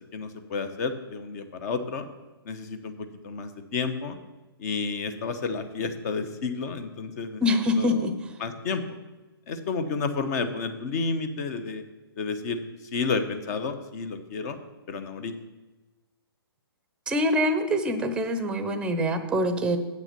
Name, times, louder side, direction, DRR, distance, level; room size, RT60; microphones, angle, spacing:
voice 1, 0.1-2.0 2.4-4.2 4.6-7.4 7.8-8.1 8.4-8.8 9.5-11.8 12.2-12.6 12.9-14.6 14.9-15.3, left 4 dB, 40° left, 9 dB, 1.1 m, -31 dB
voice 2, 7.4-8.1 17.1-19.8, left 1 dB, 5° right, 9 dB, 0.7 m, -24 dB
8.0 x 6.0 x 6.8 m, 1.1 s
hypercardioid pair, 140°, 13 cm